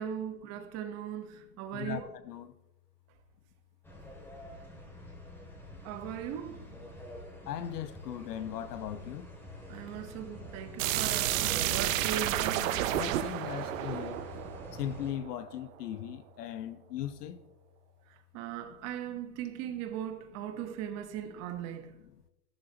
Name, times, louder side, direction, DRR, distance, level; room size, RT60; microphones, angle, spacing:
voice 1, 0.0-2.1 5.8-6.6 9.7-12.7 18.3-21.9, right 9 dB, 30° right, 1.2 m, -38 dB
voice 2, 1.7-2.5 6.2-6.3 7.5-9.3 10.1-10.5 10.9-11.0 11.6-11.7 12.9-14.2 14.7-17.4 18.7-18.8, left 10 dB, 70° left, 1.2 m, -39 dB
sound 1, 3.8-15.1, left 1 dB, 5° left, 2.5 m, -46 dB
sound 2, 10.8-15.5, right 13 dB, 50° right, 0.9 m, -31 dB
14.0 x 12.5 x 2.9 m
hypercardioid pair, 140°, 49 cm